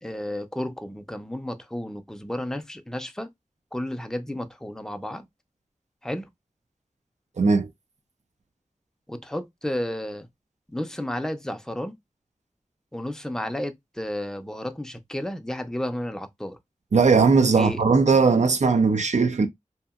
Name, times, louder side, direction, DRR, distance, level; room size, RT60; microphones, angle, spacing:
voice 1, 0.0-3.3 3.7-5.3 6.0-6.3 9.1-10.3 10.7-11.9 12.9-16.6 17.6-17.8, left 1 dB, 5° left, 0.5 m, -32 dB
voice 2, 7.4-7.7 16.9-19.5, right 4 dB, 65° right, 0.4 m, -19 dB
2.8 x 2.4 x 2.4 m
wide cardioid pair, 55°, 13 cm